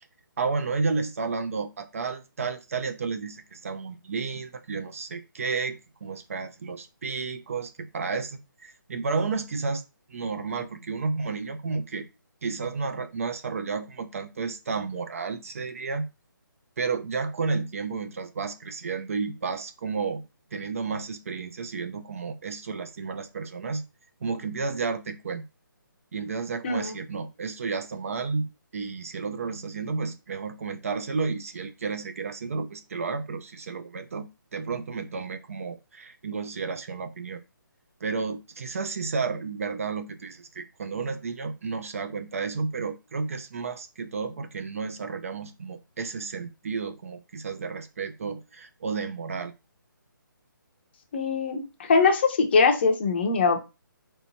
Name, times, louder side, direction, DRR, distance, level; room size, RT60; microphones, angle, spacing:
voice 1, 0.4-9.8 10.1-12.1 12.4-16.1 16.8-20.2 20.5-23.9 24.2-25.4 26.1-37.4 38.0-49.5, right 4 dB, 40° right, 0.3 m, -32 dB
voice 2, 51.1-53.6, left 4 dB, 30° left, 0.5 m, -22 dB
3.2 x 2.9 x 2.6 m
hypercardioid pair, 165°, 11 cm